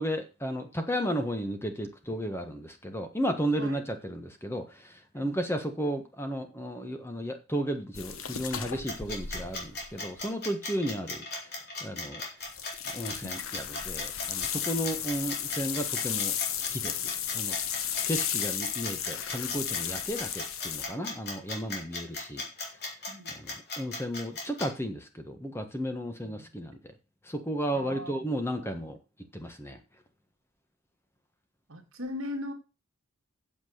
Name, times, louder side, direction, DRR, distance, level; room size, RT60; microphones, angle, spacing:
voice 1, 0.0-11.2 11.8-12.2 12.9-17.6 18.1-22.5 23.3-26.9 27.2-29.0 29.3-29.8, equal, 10° left, 6 dB, 1.4 m, -34 dB
sound 1, 7.9-10.2 12.5-20.8, left 9 dB, 75° left, 1.0 m, -34 dB
sound 2, 8.9-24.7, left 2 dB, 50° left, 3.6 m, -37 dB
voice 2, 23.1-23.4 26.2-26.5 27.7-28.3 28.6-28.8 31.7-32.5, left 1 dB, 65° right, 4 dB, 2.2 m, -39 dB
8.3 x 7.2 x 6.5 m, 0.30 s
head